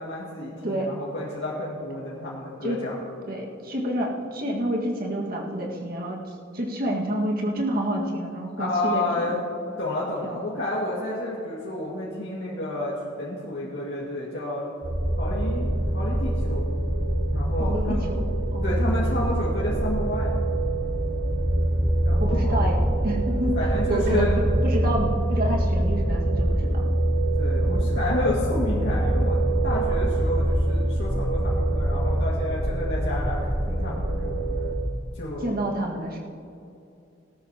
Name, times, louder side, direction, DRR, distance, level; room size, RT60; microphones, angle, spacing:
voice 1, 0.0-3.0 8.6-9.4 9.8-14.7 15.2-16.7 17.3-18.0 18.6-20.5 22.1-22.5 23.2-23.3 23.6-24.4 27.4-29.4 29.6-33.4 33.7-34.4 35.1-35.5, left 1 dB, 60° left, -7 dB, 2.2 m, -30 dB
voice 2, 3.3-9.3 10.2-10.7 17.6-18.3 18.5-18.8 22.2-23.6 23.9-26.9 27.7-27.9 35.4-36.2, right 1 dB, 50° right, -1 dB, 1.9 m, -29 dB
sound 1, 14.8-34.7, right 1 dB, 70° right, 2.2 m, -24 dB
18.5 x 13.0 x 3.0 m, 2.6 s
head